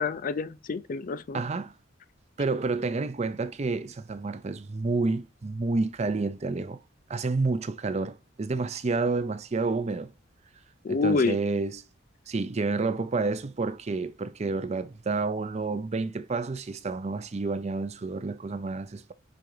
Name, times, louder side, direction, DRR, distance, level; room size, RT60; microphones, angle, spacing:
voice 1, 0.0-1.4 10.8-11.4, left 4 dB, 45° left, 0.4 m, -27 dB
voice 2, 1.3-1.7 2.4-6.8 7.1-10.1 10.9-11.8 12.3-19.1, right 3 dB, 35° right, 0.5 m, -29 dB
5.2 x 3.8 x 4.7 m
head